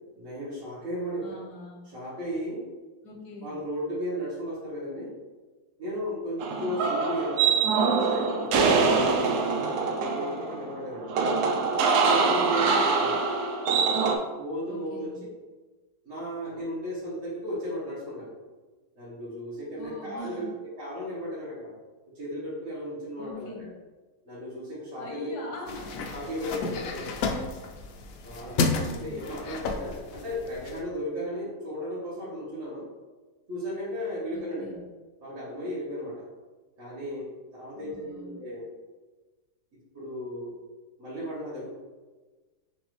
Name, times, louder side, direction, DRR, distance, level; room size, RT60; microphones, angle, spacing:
voice 1, 0.1-1.4 1.8-2.6 3.4-5.1 5.8-7.6 8.1-11.1 11.9-13.3 14.3-15.2 16.0-18.3 19.0-20.4 20.8-21.7 22.1-23.7 24.2-25.4 26.1-27.1 28.2-28.6 28.9-32.9 33.5-34.8 35.2-36.3 36.8-38.6 39.9-40.6 41.0-41.7, equal, 50° right, -11 dB, 1.7 m, -35 dB
voice 2, 1.2-1.9 3.0-3.5 6.5-6.9 12.4-13.2 14.6-15.2 19.8-20.5 23.2-23.7 24.9-26.0 27.2-27.5 28.7-29.1 34.3-34.8 37.7-38.4, left 1 dB, 90° left, -1 dB, 1.5 m, -42 dB
sound 1, 6.4-14.2, right 4 dB, 75° right, 1.1 m, -24 dB
sound 2, 25.7-30.8, left 4 dB, 70° left, 0.9 m, -32 dB
6.4 x 2.6 x 3.0 m, 1.3 s
omnidirectional pair, 1.7 m